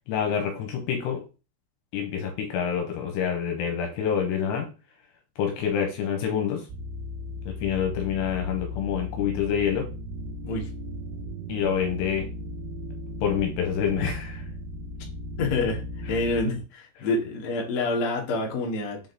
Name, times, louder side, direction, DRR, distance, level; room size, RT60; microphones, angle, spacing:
voice 1, 0.1-1.2 1.9-4.7 5.4-6.6 7.5-9.9 11.5-12.3 13.2-14.5, left 7 dB, 75° left, 3 dB, 3.1 m, -27 dB
sound 1, 6.7-16.4, left 1 dB, 80° right, 3.4 m, -36 dB
voice 2, 15.4-15.8 16.1-19.0, left 2 dB, 50° left, -1 dB, 2.2 m, -27 dB
7.2 x 3.9 x 4.0 m, 0.32 s
omnidirectional pair, 5.3 m